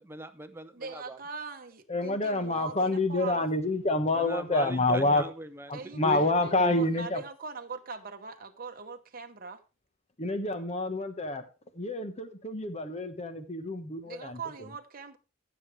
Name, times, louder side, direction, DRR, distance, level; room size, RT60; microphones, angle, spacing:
voice 1, 0.0-1.2 4.1-5.7 6.0-6.2 6.6-6.7, right 2 dB, 10° right, 0.8 m, -38 dB
voice 2, 0.7-3.5 5.7-9.6 14.0-15.2, right 4 dB, 45° right, 1.0 m, -41 dB
voice 3, 1.9-5.2 5.7-7.2 10.2-11.5 11.7-14.4, left 2 dB, 30° left, 1.2 m, -28 dB
15.0 x 7.3 x 3.2 m
head